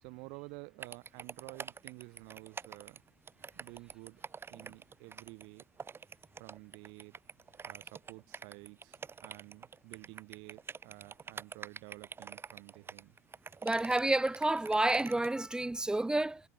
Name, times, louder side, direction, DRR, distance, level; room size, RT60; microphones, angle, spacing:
voice 1, 0.0-3.0 3.5-4.2 4.5-5.7 6.4-7.2 7.6-13.2, right 31 dB, 65° right, 3.7 m, -51 dB
sound 1, 0.8-15.4, right 5 dB, 25° right, 7.1 m, -46 dB
voice 2, 13.6-16.4, right 2 dB, 10° right, 1.4 m, -29 dB
hypercardioid pair, 85°, 9 cm